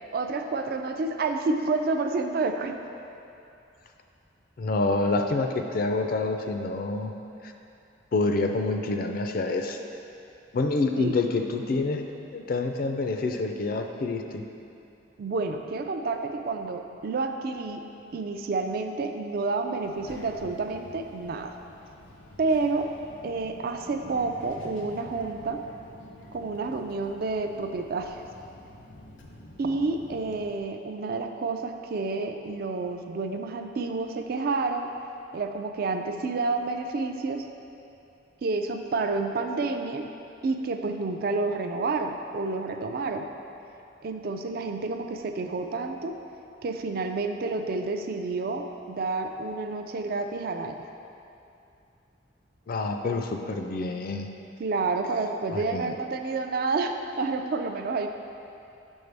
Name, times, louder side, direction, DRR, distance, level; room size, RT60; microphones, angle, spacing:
voice 1, 0.1-2.8 11.0-11.2 15.2-17.8 18.1-21.5 22.4-22.9 23.2-25.6 26.3-28.2 29.6-34.9 35.3-37.4 38.4-40.0 40.4-43.3 44.0-46.2 46.6-50.8 53.0-53.2 54.6-58.1, right 3 dB, 55° right, 6 dB, 0.4 m, -29 dB
voice 2, 4.6-7.1 7.4-7.5 8.1-9.8 10.5-12.0 12.3-14.4 52.7-54.3 55.5-55.9, left 3 dB, 50° left, 5 dB, 0.4 m, -27 dB
Child speech kid speaking, 19.8-30.6, left 1 dB, 90° left, 0.7 m, -48 dB
6.4 x 5.4 x 3.4 m, 2.7 s
head